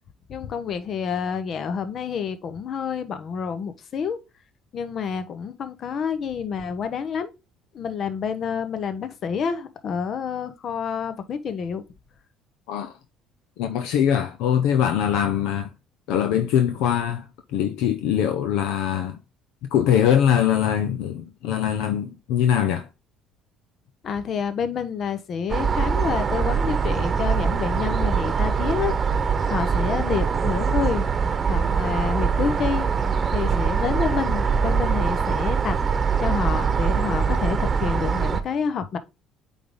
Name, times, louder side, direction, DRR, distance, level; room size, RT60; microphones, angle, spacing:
voice 1, 0.3-4.2 4.7-7.3 7.7-11.8 24.0-28.9 29.5-31.1 31.5-32.9 33.3-35.8 36.2-39.0, left 6 dB, 50° left, 1.0 m, -28 dB
voice 2, 13.6-15.7 16.1-19.2 19.7-22.9, left 9 dB, 75° left, 0.6 m, -22 dB
sound 1, 25.5-38.4, right 6 dB, 40° right, 1.0 m, -23 dB
8.4 x 3.6 x 3.7 m
hypercardioid pair, 65°, 0 cm